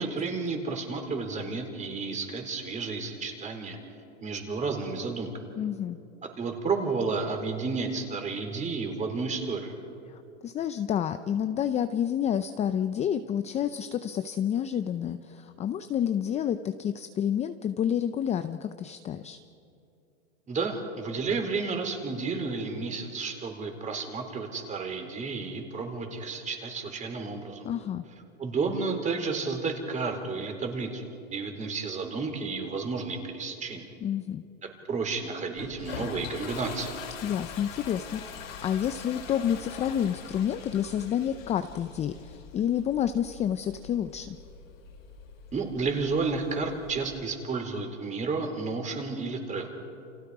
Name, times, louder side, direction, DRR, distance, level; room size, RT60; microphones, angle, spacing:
voice 1, 0.0-3.8 4.2-5.3 6.4-9.7 20.5-27.7 28.4-33.9 34.6-36.9 45.5-49.7, right 4 dB, 20° right, 4 dB, 3.8 m, -31 dB
voice 2, 5.6-6.0 10.1-19.4 27.6-28.0 34.0-34.4 37.2-44.4, left 9 dB, 15° left, 10 dB, 0.6 m, -29 dB
Toilet flush, 35.6-47.2, left 6 dB, 80° left, 5.8 m, -43 dB
29.5 x 29.0 x 4.9 m, 2.6 s
hypercardioid pair, 135°, 39 cm